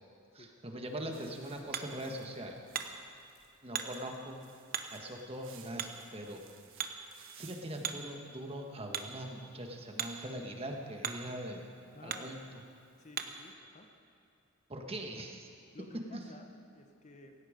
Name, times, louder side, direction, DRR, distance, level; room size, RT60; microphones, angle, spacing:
voice 1, 0.3-2.6 3.6-4.4 4.9-6.4 7.4-11.7 12.0-12.4 14.7-15.5 16.1-16.2, right 1 dB, 25° right, 3 dB, 1.5 m, -42 dB
Hammer, 0.9-13.5, right 7 dB, 45° right, 0.9 m, -44 dB
sound 1, 1.1-7.9, right 8 dB, 60° right, 1.4 m, -59 dB
voice 2, 11.9-12.4 13.0-13.9 15.7-17.5, left 2 dB, 35° left, 5 dB, 1.0 m, -53 dB
17.0 x 16.5 x 5.1 m, 2.7 s
head